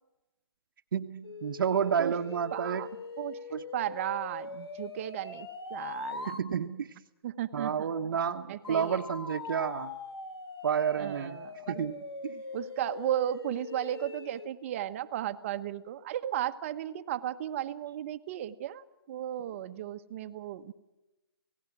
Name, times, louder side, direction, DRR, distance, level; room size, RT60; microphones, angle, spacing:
voice 1, 0.9-2.9 3.5-3.6 6.3-6.9 7.5-9.9 10.6-11.4 11.7-12.4, right 7 dB, 55° right, 2 dB, 1.2 m, -30 dB
sound 1, 1.2-6.5 8.6-14.5, left 3 dB, 80° left, 2.4 m, -42 dB
voice 2, 2.5-2.9 3.2-3.4 3.7-6.4 7.2-7.9 8.5-9.0 11.0-11.9 12.3-20.7, right 12 dB, 30° right, 11 dB, 1.1 m, -35 dB
29.0 x 18.0 x 6.1 m, 1.0 s
hypercardioid pair, 150°, 13 cm